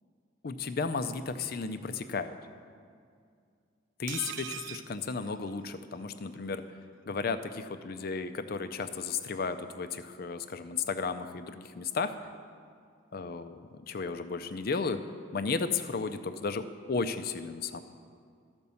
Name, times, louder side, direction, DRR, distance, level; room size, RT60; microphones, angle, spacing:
voice 1, 0.4-2.3 4.0-6.6 7.1-12.1 13.1-13.6 13.9-15.0 15.3-17.8, left 4 dB, 50° left, 10 dB, 0.5 m, -34 dB
sound 1, 4.1-6.0 6.3-6.4 6.7-6.8, right 10 dB, 65° right, 0.4 m, -42 dB
12.5 x 5.2 x 7.0 m, 2.2 s
head